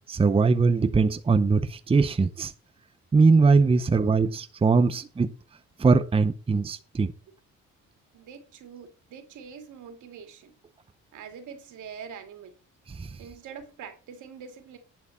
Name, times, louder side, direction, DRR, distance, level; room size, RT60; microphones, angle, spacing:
voice 1, 0.1-2.5 3.1-5.3 5.8-7.1 12.9-13.2, right 4 dB, 20° right, 0.7 m, -21 dB
voice 2, 8.1-10.6 11.1-12.6 13.2-14.8, right 7 dB, 80° right, 2.6 m, -44 dB
11.0 x 4.7 x 7.2 m
cardioid pair, 90°, 30 cm